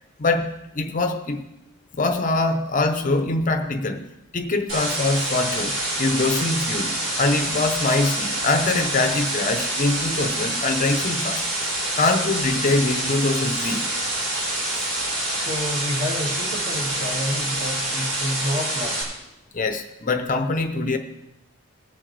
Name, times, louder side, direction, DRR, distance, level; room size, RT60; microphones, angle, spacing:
voice 1, 0.2-1.5 1.9-4.1 4.3-11.4 12.0-13.8 14.8-14.9 19.5-21.0, left 2 dB, 40° left, 7 dB, 0.7 m, -23 dB
sound 1, 4.7-19.0, right 1 dB, 70° right, 5.1 m, -26 dB
voice 2, 15.3-19.2, left 1 dB, 35° right, 0 dB, 1.9 m, -29 dB
19.5 x 7.6 x 3.3 m, 0.91 s
head